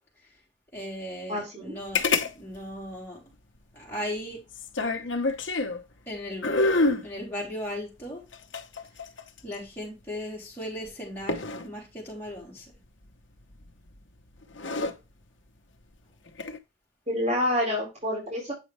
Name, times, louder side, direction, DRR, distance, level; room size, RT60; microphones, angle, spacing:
voice 1, 0.7-2.0 2.3-3.2 3.7-4.4 6.1-6.5 7.0-8.2 9.4-12.6, equal, 10° left, 3.5 m, -37 dB
voice 2, 1.3-1.8 17.1-18.5, left 1 dB, 35° right, 4.5 m, -28 dB
sound 1, 2.0-2.3 2.6-2.7 4.5-5.8 6.4-7.1 8.3-9.5 11.3-11.7 13.6-13.9 14.4-14.9 16.3-16.6, left 3 dB, 80° left, 1.0 m, -26 dB
8.3 x 5.3 x 3.3 m
head